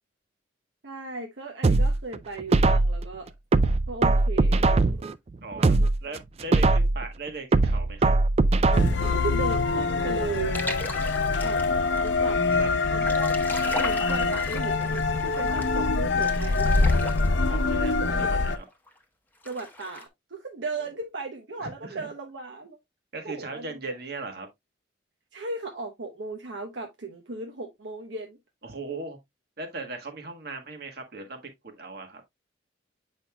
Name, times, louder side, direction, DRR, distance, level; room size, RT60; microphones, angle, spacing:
voice 1, 0.8-3.3 3.9-5.0 9.1-10.8 11.4-11.7 12.0-12.4 12.9-13.4 13.7-17.0 17.8-18.3 19.4-22.8 23.2-24.0 25.3-28.4, right 3 dB, 80° right, 1.0 m, -36 dB
sound 1, 1.6-3.0 3.5-5.1 5.5-7.0 7.5-9.1 9.5-9.6, right 2 dB, 35° right, 0.3 m, -21 dB
voice 2, 5.4-8.1 11.6-12.7 15.5-15.6 17.4-18.6 20.8-20.9 21.6-22.1 23.1-24.5 28.6-29.2 29.6-32.2, right 3 dB, 55° right, 1.5 m, -39 dB
sound 2, 8.7-18.6, left 3 dB, 80° left, 0.6 m, -25 dB
sound 3, 8.9-17.5 18.0-18.1 18.2-19.0 19.4-20.0, left 1 dB, 10° left, 1.0 m, -38 dB
8.1 x 5.3 x 2.3 m
head